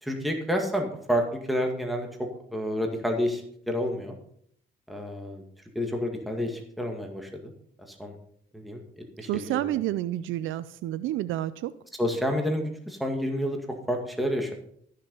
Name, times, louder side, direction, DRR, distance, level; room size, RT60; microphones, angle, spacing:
voice 1, 0.0-4.1 4.9-5.4 5.8-7.5 7.9-8.2 8.5-8.8 9.2-9.7 12.0-14.6, equal, ahead, 2 dB, 2.0 m, -29 dB
voice 2, 9.2-11.7, right 14 dB, 80° right, 15 dB, 0.5 m, -29 dB
13.5 x 6.6 x 5.5 m, 0.66 s
cardioid pair, 90°, 20 cm